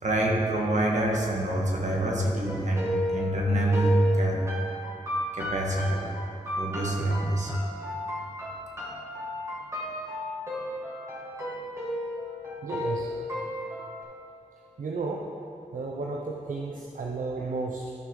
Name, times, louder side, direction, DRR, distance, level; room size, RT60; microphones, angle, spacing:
voice 1, 0.0-4.4 5.3-6.1 6.6-7.5, right 1 dB, 65° right, -2 dB, 1.7 m, -26 dB
sound 1, 2.5-14.0, left 1 dB, 20° right, 2.2 m, -33 dB
voice 2, 12.6-13.1 14.8-15.3 15.7-17.9, right 3 dB, 80° right, 0 dB, 0.6 m, -33 dB
13.0 x 5.8 x 3.9 m, 2.6 s
cardioid pair, 60°, 13 cm